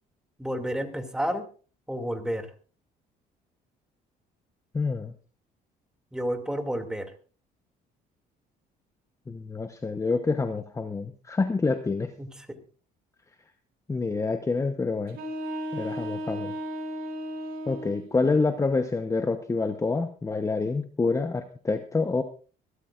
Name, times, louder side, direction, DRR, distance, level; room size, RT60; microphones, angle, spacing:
voice 1, 0.4-1.4 1.9-2.5 6.1-7.1 12.2-12.3, equal, 5° right, 5 dB, 2.5 m, -30 dB
voice 2, 4.7-5.1 9.3-12.1 13.9-15.2 15.7-16.6 17.7-22.2, left 3 dB, 20° left, 8 dB, 0.9 m, -27 dB
sound 1, 15.1-18.1, equal, 65° right, 3.6 m, -34 dB
24.0 x 13.0 x 2.5 m, 0.37 s
cardioid pair, 110°, 17 cm